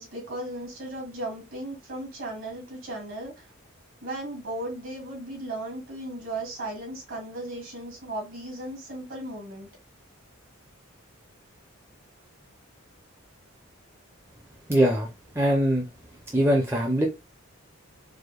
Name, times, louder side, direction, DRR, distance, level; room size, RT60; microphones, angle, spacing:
voice 1, 0.0-3.5 4.0-9.7, right 1 dB, 65° right, 2.1 m, -36 dB
voice 2, 14.7-15.9 16.3-17.1, right 1 dB, 10° right, 0.5 m, -22 dB
4.8 x 2.2 x 2.3 m
head